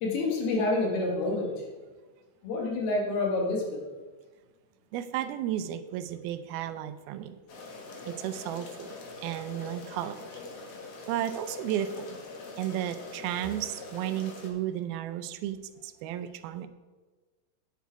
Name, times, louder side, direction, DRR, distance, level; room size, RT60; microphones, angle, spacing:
voice 1, 0.0-1.5 2.4-3.8, left 2 dB, 90° left, 0 dB, 3.7 m, -28 dB
voice 2, 4.9-7.4 8.0-8.9 9.2-10.4 11.1-12.2 12.6-16.7, right 11 dB, 85° right, 11 dB, 2.5 m, -33 dB
sound 1, 7.5-14.5, left 3 dB, 55° left, 2.1 m, -43 dB
10.5 x 8.3 x 4.7 m, 1.3 s
omnidirectional pair, 4.3 m